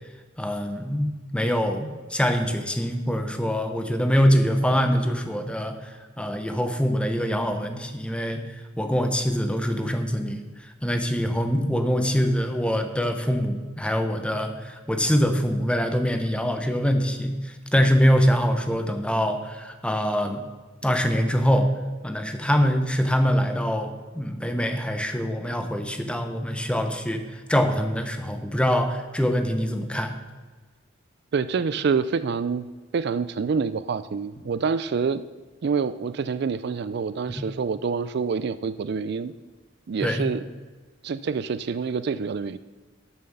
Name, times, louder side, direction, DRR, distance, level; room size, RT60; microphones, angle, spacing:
voice 1, 0.4-20.4 20.8-21.7 22.0-30.1 37.3-37.5 40.0-40.3, equal, 5° left, 6 dB, 0.9 m, -24 dB
voice 2, 31.3-32.6 32.9-35.2 35.6-39.3 39.9-40.4 41.0-42.6, right 5 dB, 60° right, 14 dB, 0.4 m, -26 dB
12.5 x 7.2 x 5.4 m, 1.3 s
head